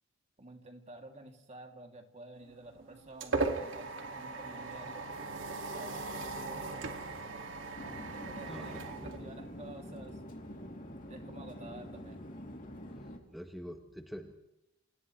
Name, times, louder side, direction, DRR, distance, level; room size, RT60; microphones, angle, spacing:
voice 1, 0.4-5.1 5.7-6.9 8.1-10.2 11.1-12.3, right 1 dB, 35° right, 3 dB, 2.8 m, -51 dB
sound 1, 2.5-9.9, right 3 dB, 65° right, 2.4 m, -39 dB
Chatter / Fixed-wing aircraft airplane, 7.8-13.2, equal, 40° left, 3.1 m, -46 dB
voice 2, 8.5-8.8 13.3-14.3, equal, ahead, 4 dB, 1.3 m, -45 dB
29.5 x 27.0 x 3.3 m, 0.88 s
head